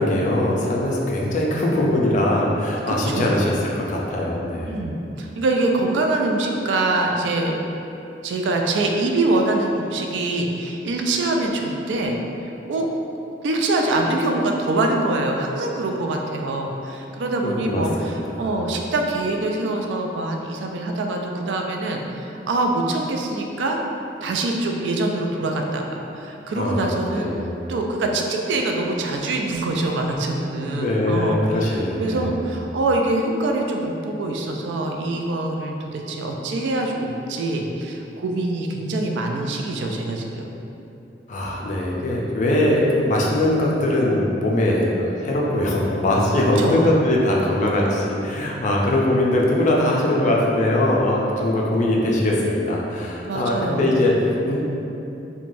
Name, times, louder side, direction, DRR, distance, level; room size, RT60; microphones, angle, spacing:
voice 1, 0.0-4.8 17.4-18.4 26.5-27.4 30.7-32.3 41.3-54.7, left 1 dB, 45° left, -3 dB, 0.4 m, -21 dB
voice 2, 2.9-3.4 4.7-7.6 8.2-12.2 12.7-12.9 13.4-23.8 24.2-27.3 27.7-40.5 46.6-46.9 53.2-54.1, right 2 dB, 85° right, 2 dB, 0.3 m, -24 dB
3.2 x 2.1 x 2.5 m, 2.8 s
head